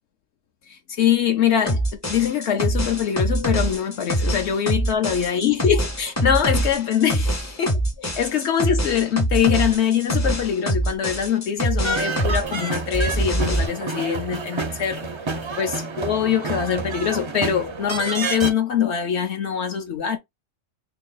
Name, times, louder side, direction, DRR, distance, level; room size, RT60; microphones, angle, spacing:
voice 1, 0.7-15.1 15.6-20.2, left 8 dB, 70° left, 0.9 m, -23 dB
sound 1, 1.7-12.4 12.7-13.7, right 1 dB, 25° left, 0.4 m, -24 dB
sound 2, 11.8-18.5, right 3 dB, 50° right, 0.3 m, -29 dB
2.9 x 2.6 x 3.8 m
omnidirectional pair, 1.3 m